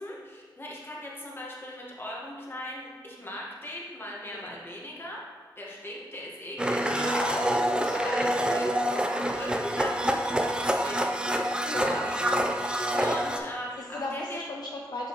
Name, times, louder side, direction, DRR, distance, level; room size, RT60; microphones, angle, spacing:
voice 1, 0.0-5.2 5.6-7.6 7.9-8.7 9.3-11.1 11.8-14.5, left 1 dB, 25° left, -4 dB, 1.6 m, -39 dB
Domestic sounds home sounds, 6.6-13.4, right 1 dB, 10° right, 0.5 m, -27 dB
voice 2, 7.0-7.5 7.8-8.3 8.8-9.3 11.7-12.1 13.9-15.1, left 2 dB, 55° left, -1 dB, 0.6 m, -36 dB
6.6 x 5.5 x 3.1 m, 1.6 s
cardioid pair, 55°, 8 cm